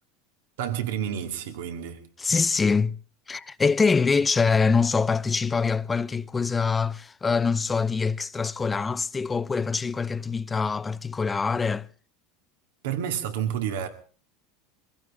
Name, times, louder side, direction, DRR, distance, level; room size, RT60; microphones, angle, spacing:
voice 1, 0.6-2.1 12.8-13.9, right 9 dB, 80° right, 2.3 m, -30 dB
voice 2, 2.2-3.0 3.3-11.9, left 5 dB, 20° left, 0.7 m, -24 dB
23.0 x 16.0 x 3.7 m
supercardioid pair, 105°, 0 cm